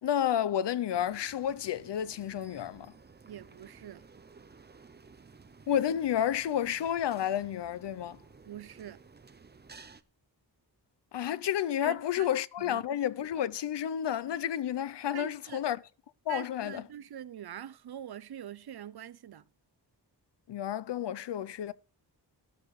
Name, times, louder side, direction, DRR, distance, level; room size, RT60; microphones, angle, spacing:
voice 1, 0.0-2.9 5.7-8.2 11.1-15.8 16.3-16.8 20.5-21.7, left 10 dB, 85° left, 0.7 m, -31 dB
sound 1, 0.9-10.0, right 4 dB, 25° right, 0.7 m, -55 dB
voice 2, 3.2-4.0 8.4-9.0 11.8-12.3 12.6-12.8 15.1-15.6 16.3-19.4, right 10 dB, 65° right, 0.8 m, -44 dB
13.0 x 12.0 x 3.2 m
wide cardioid pair, 170°, 41 cm